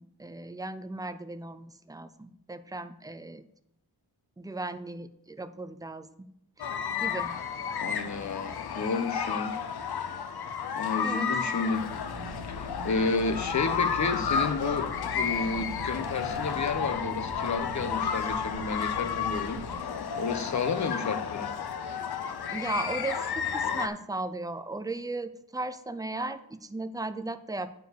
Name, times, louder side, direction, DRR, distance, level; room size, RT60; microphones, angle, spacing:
voice 1, 0.0-3.4 4.4-6.3 6.6-7.3 11.0-11.5 22.5-27.7, right 2 dB, 10° right, 11 dB, 0.5 m, -36 dB
sound 1, 6.6-23.9, left 7 dB, 75° left, 0.8 m, -32 dB
voice 2, 7.8-9.5 10.8-11.9 12.2-19.6 20.2-21.5, left 4 dB, 50° left, 9 dB, 0.9 m, -31 dB
sound 2, 11.8-19.8, left 1 dB, 65° right, 1.3 m, -42 dB
9.2 x 4.7 x 6.6 m, 0.76 s
wide cardioid pair, 95°, 38 cm